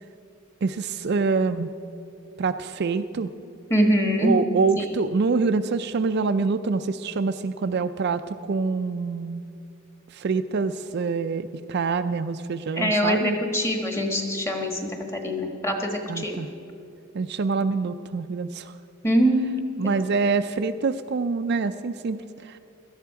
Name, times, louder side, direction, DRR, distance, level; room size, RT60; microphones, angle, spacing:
voice 1, 0.6-1.7 2.4-3.3 4.2-9.4 10.1-13.4 16.1-16.5 17.1-18.7 19.8-22.6, right 4 dB, 50° right, 9 dB, 0.4 m, -25 dB
voice 2, 3.7-4.3 4.8-4.9 12.7-16.4 19.0-19.9, equal, 15° left, 3 dB, 1.4 m, -24 dB
17.0 x 13.0 x 4.7 m, 2.7 s
head